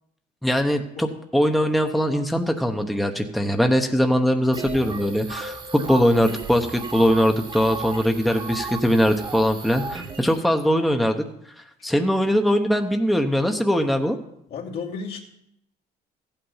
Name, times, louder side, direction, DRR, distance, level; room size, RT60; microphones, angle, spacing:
voice 1, 0.4-11.2 11.8-14.2, equal, ahead, 4 dB, 1.0 m, -21 dB
sound 1, 4.5-10.4, right 4 dB, 30° right, 1.4 m, -35 dB
voice 2, 14.5-15.2, left 5 dB, 70° left, -2 dB, 2.6 m, -32 dB
15.0 x 8.9 x 5.6 m, 0.76 s
cardioid pair, 110°, 17 cm